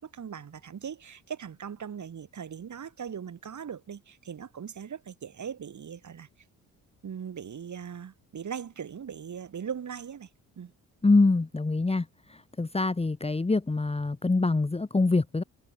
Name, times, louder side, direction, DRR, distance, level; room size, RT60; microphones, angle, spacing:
voice 1, 0.0-6.3 7.0-10.3 10.6-10.7, right 7 dB, 50° right, 4.2 m, -39 dB
voice 2, 11.0-12.1 12.6-15.4, left 3 dB, 15° left, 1.4 m, -24 dB
supercardioid pair, 65°, 38 cm